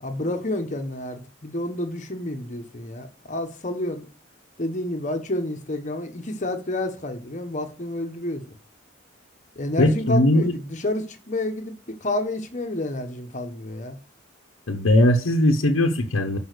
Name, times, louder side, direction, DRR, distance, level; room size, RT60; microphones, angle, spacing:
voice 1, 0.0-4.0 4.6-8.4 9.6-11.7 12.0-14.0, left 1 dB, 35° left, 1.0 m, -29 dB
voice 2, 9.8-10.6 14.7-16.4, left 1 dB, 85° left, 0.8 m, -19 dB
6.2 x 5.5 x 6.5 m
head